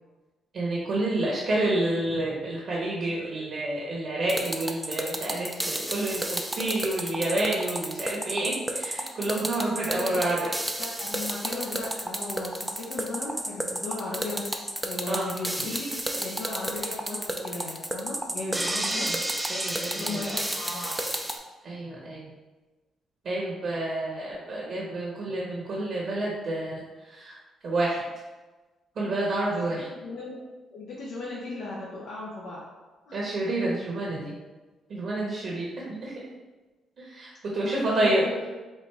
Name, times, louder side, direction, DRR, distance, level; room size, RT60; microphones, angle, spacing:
voice 1, 0.5-10.5 15.1-15.3 18.6-19.2 19.5-20.3 21.6-22.3 23.2-27.4 27.6-28.0 28.9-29.9 33.1-34.4 34.9-36.2 37.0-38.2, right 2 dB, 55° right, -4 dB, 1.0 m, -29 dB
sound 1, 4.3-21.4, right 1 dB, 10° right, 0.4 m, -31 dB
voice 2, 9.9-10.5 10.8-19.1 19.9-21.0 29.9-30.4 30.7-32.6 33.0-33.2 37.7-38.4, left 2 dB, 75° left, -5 dB, 0.8 m, -36 dB
4.3 x 2.5 x 3.4 m, 1.2 s
cardioid pair, 90°, 0 cm